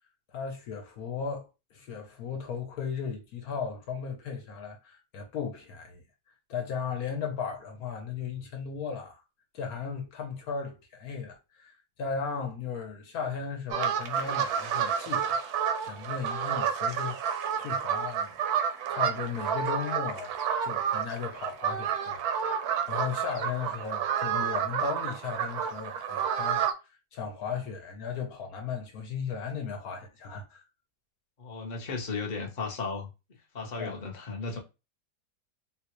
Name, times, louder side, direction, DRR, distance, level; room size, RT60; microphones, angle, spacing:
voice 1, 0.3-6.0 6.5-9.2 9.5-18.6 18.9-20.3 20.6-26.6 27.1-30.6 33.6-34.0, left 6 dB, 65° left, 1.1 m, -36 dB
sound 1, 13.7-26.7, right 8 dB, 70° right, 1.0 m, -30 dB
voice 2, 31.4-33.1 33.5-34.6, left 4 dB, 40° left, 0.7 m, -35 dB
3.8 x 2.3 x 2.9 m
omnidirectional pair, 1.9 m